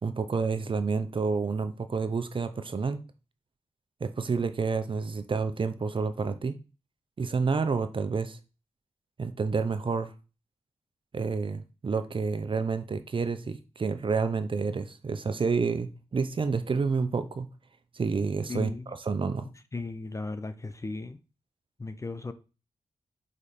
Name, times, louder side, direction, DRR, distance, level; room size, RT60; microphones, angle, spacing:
voice 1, 0.0-3.0 4.0-6.6 7.2-8.4 9.2-10.1 11.1-17.5 17.9-18.7 19.1-19.5, right 4 dB, 45° right, 0.8 m, -29 dB
voice 2, 18.5-19.0 19.7-21.2 21.8-22.3, left 3 dB, 25° left, 0.7 m, -36 dB
5.1 x 4.9 x 4.3 m
cardioid pair, 60°, 12 cm